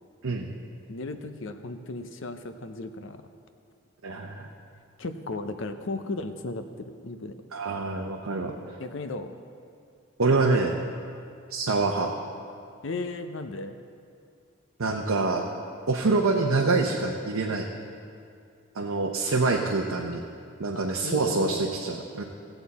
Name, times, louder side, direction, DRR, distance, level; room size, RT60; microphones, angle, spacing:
voice 1, 0.9-3.2 5.0-7.3 8.8-9.3 12.8-13.8 19.5-19.6 20.7-21.6, left 2 dB, 60° left, 8 dB, 0.6 m, -35 dB
voice 2, 4.0-4.5 7.5-8.6 10.2-10.8 11.5-12.1 14.8-15.5 15.9-17.6 18.7-20.2 20.6-22.2, right 3 dB, 85° right, 0 dB, 0.8 m, -25 dB
17.0 x 8.0 x 4.2 m, 2.4 s
head